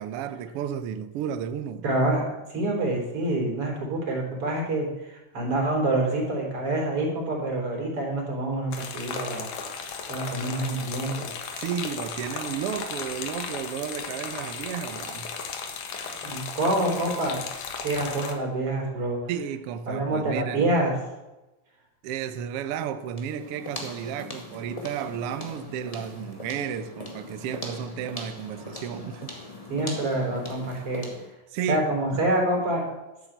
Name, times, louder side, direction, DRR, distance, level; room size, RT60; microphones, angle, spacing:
voice 1, 0.0-1.8 11.6-15.4 19.3-20.7 22.0-29.4 30.7-30.8 31.5-31.9, right 8 dB, 70° right, 1.4 m, -33 dB
voice 2, 1.8-2.3 2.5-9.5 9.8-11.3 16.2-17.4 17.8-19.2 19.9-20.9 29.7-31.1 31.7-32.8, right 2 dB, 50° right, 4.3 m, -27 dB
sound 1, 8.7-18.3, left 5 dB, 80° left, 2.9 m, -35 dB
sound 2, 23.1-31.3, left 2 dB, 15° left, 1.6 m, -40 dB
11.5 x 8.8 x 8.0 m
omnidirectional pair, 3.4 m